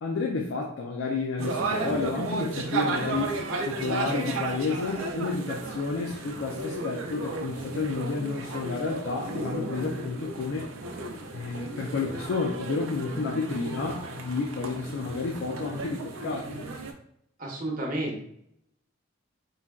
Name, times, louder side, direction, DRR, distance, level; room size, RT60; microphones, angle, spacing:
voice 1, 0.0-3.4 3.7-10.7 11.3-16.6, left 4 dB, 60° left, -1 dB, 0.4 m, -31 dB
sound 1, 1.4-16.9, right 3 dB, 80° right, 0.4 m, -34 dB
voice 2, 17.4-18.2, right 1 dB, 40° right, -2 dB, 0.7 m, -31 dB
3.8 x 2.2 x 2.3 m, 0.72 s
head